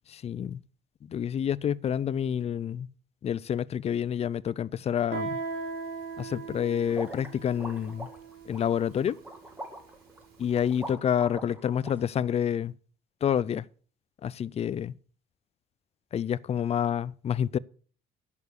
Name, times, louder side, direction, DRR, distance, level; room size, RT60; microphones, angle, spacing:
voice 1, 0.1-0.6 1.1-2.9 3.2-5.4 6.2-8.1 8.5-9.2 10.4-12.7 13.2-13.6 14.2-14.9 16.1-17.6, left 9 dB, 40° left, 0.5 m, -28 dB
Guitar, 5.1-10.6, right 4 dB, 70° right, 4.7 m, -39 dB
sound 1, 6.9-11.9, right 1 dB, 10° right, 2.3 m, -42 dB
11.0 x 6.8 x 6.7 m
cardioid pair, 110°, 17 cm